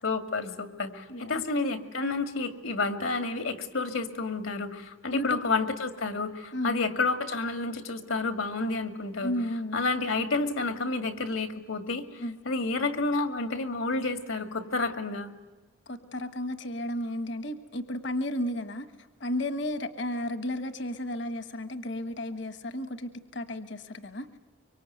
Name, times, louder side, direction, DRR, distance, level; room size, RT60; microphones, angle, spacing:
voice 1, 0.0-9.3 9.7-15.3, left 3 dB, 80° left, 8 dB, 2.3 m, -30 dB
voice 2, 1.1-1.4 5.1-5.4 6.5-6.9 9.2-9.8 12.2-12.4 15.9-18.9 19.2-24.3, left 1 dB, 60° left, 11 dB, 1.3 m, -33 dB
25.0 x 24.0 x 9.4 m, 1.2 s
head